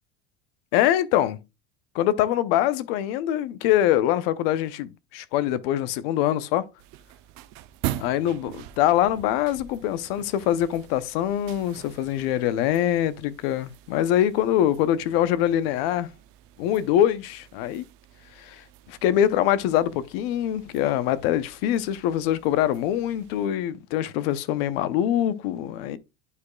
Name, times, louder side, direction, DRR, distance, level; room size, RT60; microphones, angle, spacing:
voice 1, 0.7-1.4 1.9-6.6 8.0-16.1 16.6-17.8 18.4-18.6 18.9-26.0, left 11 dB, 80° left, 0.7 m, -24 dB
sound 1, 6.8-23.5, right 14 dB, 60° right, 0.6 m, -42 dB
11.0 x 4.9 x 2.3 m
cardioid pair, 170°, 29 cm